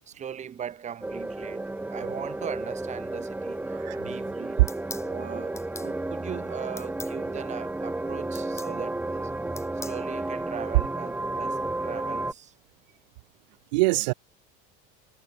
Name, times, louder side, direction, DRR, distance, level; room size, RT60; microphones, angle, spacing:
voice 1, 0.1-3.7 4.0-4.6 5.0-9.3 9.7-12.5, right 8 dB, 35° right, 4.0 m, -39 dB
sound 1, 1.0-12.3, right 2 dB, 10° right, 2.7 m, -32 dB
voice 2, 3.7-4.1 4.6-4.7 9.8-9.9 13.7-14.1, right 23 dB, 90° right, 1.5 m, -23 dB
sound 2, 4.7-5.1 5.6-5.9 6.8-7.2 8.3-8.7 9.6-10.0, left 3 dB, 15° left, 1.6 m, -41 dB
supercardioid pair, 115°, 21 cm